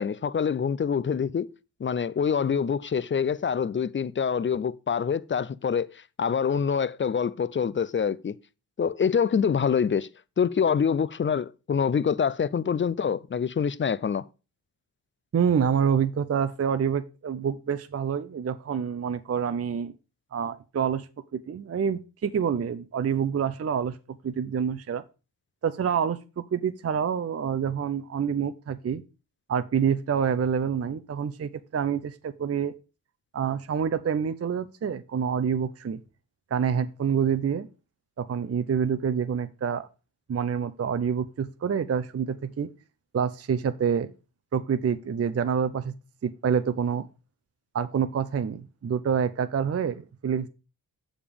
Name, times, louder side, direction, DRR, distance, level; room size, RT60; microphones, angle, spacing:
voice 1, 0.0-1.5 1.8-8.3 8.8-10.1 10.4-14.2, left 7 dB, 30° left, 0.4 m, -26 dB
voice 2, 15.3-19.9 20.3-21.1 21.3-24.0 24.2-25.0 25.6-29.0 29.5-32.7 33.3-36.0 36.5-37.7 38.2-39.9 40.3-42.7 43.1-44.1 44.5-45.9 46.2-47.1 47.7-50.5, right 7 dB, 35° right, 0.5 m, -27 dB
7.0 x 5.0 x 5.1 m
cardioid pair, 60°, 43 cm